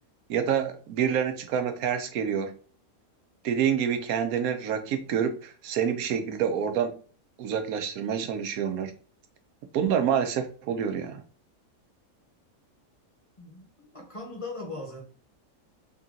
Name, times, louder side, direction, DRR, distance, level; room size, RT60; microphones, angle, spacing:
voice 1, 0.3-2.6 3.4-7.0 7.4-8.9 9.7-11.2, right 8 dB, 85° right, 1.1 m, -27 dB
voice 2, 13.4-15.0, left 2 dB, 30° left, 0.8 m, -39 dB
3.6 x 2.7 x 3.7 m
omnidirectional pair, 1.5 m